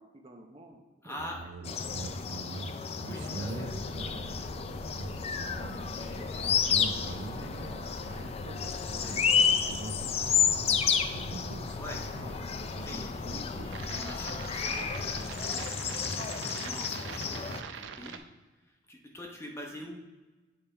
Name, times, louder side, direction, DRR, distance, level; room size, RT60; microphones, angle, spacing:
voice 1, 0.1-1.3 1.6-1.8 3.2-4.9 5.2-8.3 8.9-10.0 19.7-19.9, right 1 dB, 30° right, 2 dB, 0.6 m, -51 dB
voice 2, 1.0-1.5 3.1-3.7 11.7-15.1 16.2-18.3 18.9-20.0, left 1 dB, 15° left, 0 dB, 0.8 m, -45 dB
sound 1, 1.2-18.2, right 4 dB, 70° right, 0.5 m, -43 dB
sound 2, 1.6-17.6, left 6 dB, 30° left, 0.3 m, -31 dB
sound 3, 3.6-15.3, left 2 dB, 60° left, 0.7 m, -47 dB
8.7 x 3.5 x 4.3 m, 1.2 s
head